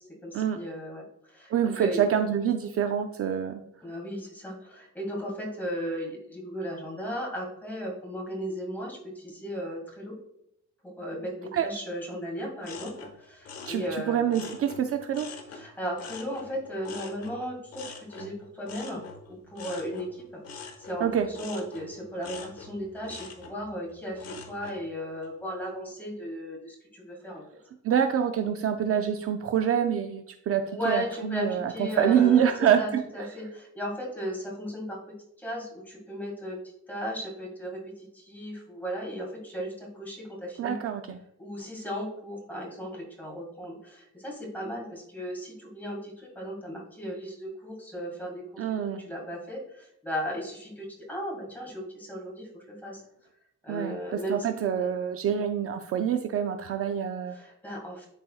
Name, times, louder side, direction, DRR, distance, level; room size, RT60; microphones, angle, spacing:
voice 1, 0.2-1.5 1.8-2.0 3.8-10.1 10.8-12.9 13.2-14.5 15.5-20.2 20.5-27.4 30.7-35.0 35.4-36.6 36.9-40.8 41.4-53.0 53.6-54.4 54.8-54.9 57.3-58.1, equal, 5° left, -2 dB, 1.9 m, -36 dB
voice 2, 1.5-3.6 11.5-11.7 13.7-15.3 21.0-21.3 27.8-33.0 40.6-41.2 48.6-49.0 53.7-57.4, right 9 dB, 50° right, 6 dB, 0.4 m, -26 dB
sound 1, 12.6-15.6 16.0-24.8 25.2-25.7, left 5 dB, 55° left, 1.1 m, -44 dB
11.5 x 4.1 x 2.3 m, 0.78 s
wide cardioid pair, 175°, 29 cm